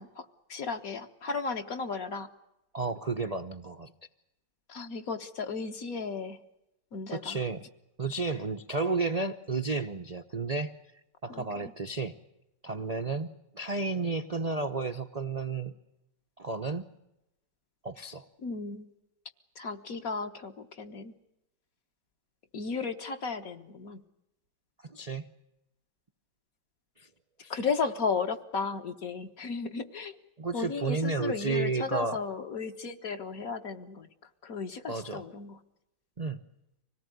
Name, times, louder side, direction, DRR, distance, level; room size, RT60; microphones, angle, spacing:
voice 1, 0.0-2.3 4.7-6.4 6.9-7.4 11.3-11.7 18.4-18.9 19.5-21.1 22.5-24.0 27.5-30.1 30.5-34.1 34.4-35.6, left 4 dB, 50° left, 6 dB, 1.6 m, -34 dB
voice 2, 2.7-3.9 7.1-7.6 8.0-10.7 11.2-12.1 12.6-15.7 16.4-16.9 17.8-18.2 24.9-25.3 27.0-27.1 27.4-27.5 30.4-32.2 34.9-35.2 36.2-36.4, right 3 dB, 40° right, 5 dB, 0.5 m, -32 dB
25.0 x 18.0 x 9.3 m, 0.91 s
omnidirectional pair, 2.0 m